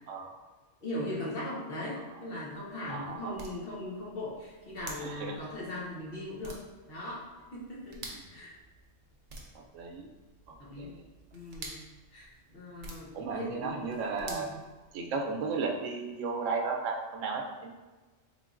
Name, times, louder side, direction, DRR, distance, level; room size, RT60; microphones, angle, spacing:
voice 1, 0.8-6.6 6.9-8.0 8.3-8.6 10.6-11.0 11.3-11.8 12.1-13.9 14.2-14.5, left 1 dB, 50° left, -6 dB, 1.0 m, -39 dB
sound 1, 2.3-15.3, right 2 dB, 50° right, 0.5 m, -50 dB
voice 2, 2.9-3.4 5.0-5.4 8.3-8.4 9.7-10.1 10.5-11.0 13.1-14.5 14.9-17.7, right 4 dB, 85° right, 2 dB, 0.9 m, -34 dB
3.7 x 3.4 x 2.5 m, 1.3 s
omnidirectional pair, 1.3 m